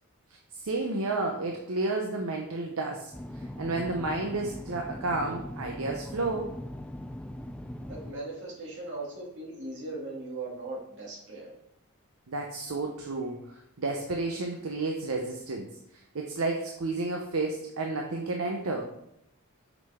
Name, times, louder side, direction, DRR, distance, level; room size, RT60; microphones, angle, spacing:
voice 1, 0.6-3.1 3.6-6.5 12.3-13.4 13.8-15.7 16.1-18.9, right 3 dB, 75° right, 1 dB, 0.8 m, -31 dB
sound 1, 3.1-8.1, left 1 dB, 5° left, 0.3 m, -40 dB
voice 2, 7.9-11.5, right 2 dB, 55° right, -3 dB, 2.4 m, -39 dB
6.3 x 6.3 x 3.6 m, 0.78 s
head